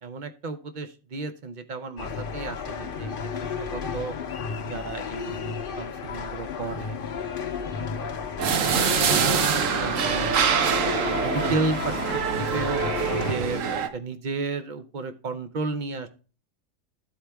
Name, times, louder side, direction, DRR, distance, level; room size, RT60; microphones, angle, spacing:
voice 1, 0.0-4.1 4.6-9.3 9.8-12.8 13.2-16.1, right 3 dB, 50° right, 9 dB, 0.6 m, -34 dB
sound 1, 2.0-13.4, left 6 dB, 50° left, 0.7 m, -32 dB
sound 2, 8.4-13.9, right 7 dB, 70° right, 1.1 m, -24 dB
12.0 x 4.4 x 3.4 m, 0.35 s
omnidirectional pair, 1.5 m